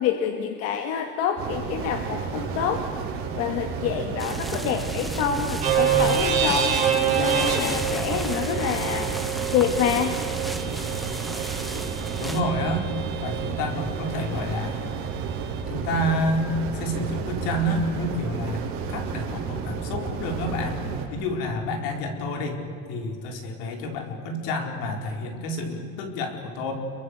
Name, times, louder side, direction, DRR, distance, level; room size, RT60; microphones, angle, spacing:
voice 1, 0.0-2.9 3.4-9.1 9.5-10.2, left 8 dB, 50° left, 5 dB, 1.8 m, -27 dB
sound 1, 1.4-21.1, right 6 dB, 45° right, 5.4 m, -32 dB
sound 2, 4.2-12.4, right 1 dB, ahead, 1.2 m, -35 dB
sound 3, 5.6-13.5, right 8 dB, 25° right, 7.8 m, -27 dB
voice 2, 12.2-12.9 13.2-14.9 15.7-20.8 21.1-22.6 22.9-26.7, left 1 dB, 75° left, 4 dB, 4.7 m, -29 dB
29.5 x 23.0 x 8.1 m, 2.6 s
cardioid pair, 175°, 30 cm